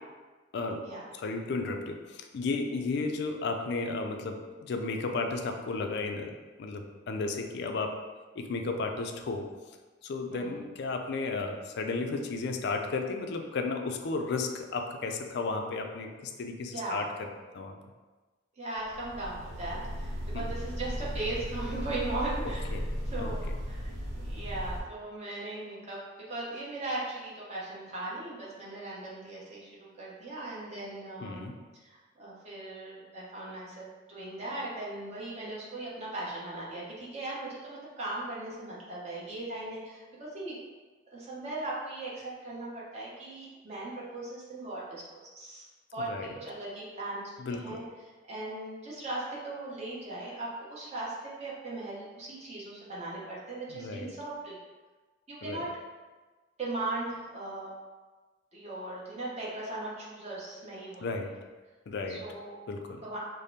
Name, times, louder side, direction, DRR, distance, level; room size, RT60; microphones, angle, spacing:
voice 1, 0.5-0.9 1.2-8.0 8.4-9.5 10.0-17.3 17.5-17.8 20.3-20.5 22.7-22.9 23.2-23.3 31.2-31.6 46.1-46.3 47.4-47.8 53.7-54.1 55.4-55.6 61.0-61.4 61.9-62.3 62.7-63.0, left 3 dB, 60° left, 4 dB, 0.4 m, -34 dB
voice 2, 16.7-17.0 18.6-22.6 23.1-23.8 24.1-26.0 26.3-31.4 31.7-40.6 41.1-45.6 45.9-47.2 47.5-47.8 48.3-54.6 55.3-55.7 56.6-57.7 58.5-61.2 62.1-62.6 63.0-63.2, right 2 dB, 35° right, -6 dB, 0.9 m, -38 dB
sound 1, 18.8-24.8, equal, 65° right, 0.8 m, -36 dB
4.9 x 2.0 x 2.7 m, 1.3 s
head